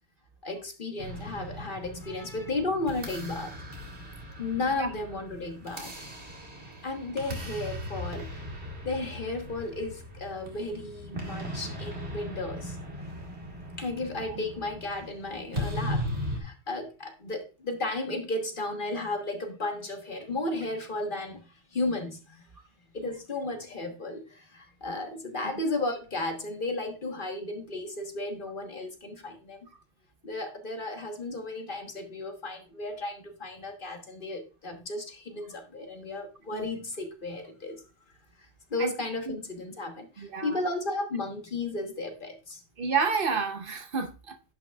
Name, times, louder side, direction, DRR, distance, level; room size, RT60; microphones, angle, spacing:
voice 1, 0.4-3.5 4.4-5.9 6.6-8.5 8.8-12.8 13.8-22.5 22.9-29.7 30.2-37.8 38.4-42.6, left 2 dB, 50° left, 1.4 m, -34 dB
sound 1, 1.0-16.4, equal, 75° right, 2.2 m, -38 dB
voice 2, 40.2-40.6 42.8-44.4, right 5 dB, 55° right, 0.9 m, -30 dB
10.5 x 5.8 x 2.3 m
omnidirectional pair, 1.1 m